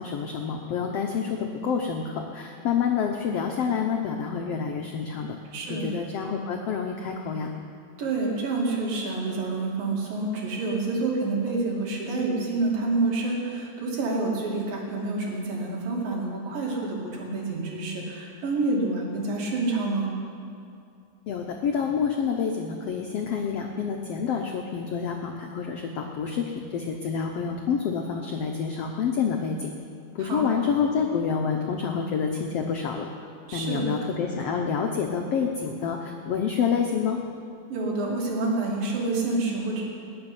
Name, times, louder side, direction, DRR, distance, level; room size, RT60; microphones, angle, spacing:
voice 1, 0.0-5.4 5.7-7.5 21.3-29.7 30.1-33.1 33.5-37.2, left 6 dB, 85° left, 2 dB, 1.3 m, -28 dB
voice 2, 5.5-5.9 8.0-20.1 30.2-30.5 33.5-33.9 37.7-39.8, right 3 dB, 75° right, -2 dB, 4.2 m, -28 dB
19.5 x 7.3 x 9.7 m, 2.5 s
omnidirectional pair, 4.1 m